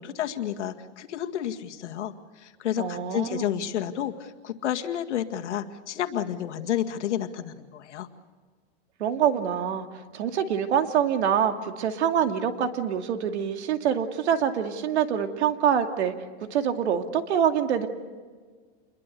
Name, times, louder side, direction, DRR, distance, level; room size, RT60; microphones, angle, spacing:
voice 1, 0.0-8.1, left 10 dB, 85° left, 6 dB, 2.1 m, -31 dB
voice 2, 2.8-3.5 9.0-9.9 10.1-16.1 16.5-17.9, right 8 dB, 75° right, 6 dB, 2.6 m, -25 dB
28.0 x 22.5 x 6.8 m, 1.5 s
supercardioid pair, 160°, 34 cm